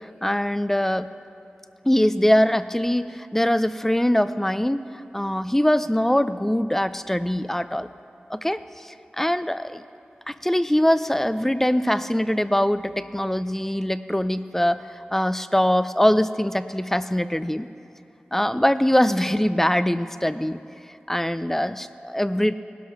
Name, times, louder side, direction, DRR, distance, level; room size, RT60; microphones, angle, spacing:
voice 1, 0.2-1.1 1.8-4.9 5.1-7.9 8.3-9.8 10.3-14.8 15.1-17.7 18.3-20.6 21.1-22.5, equal, 10° left, 13 dB, 0.5 m, -22 dB
19.0 x 12.0 x 5.9 m, 2.6 s
wide cardioid pair, 65°, 4 cm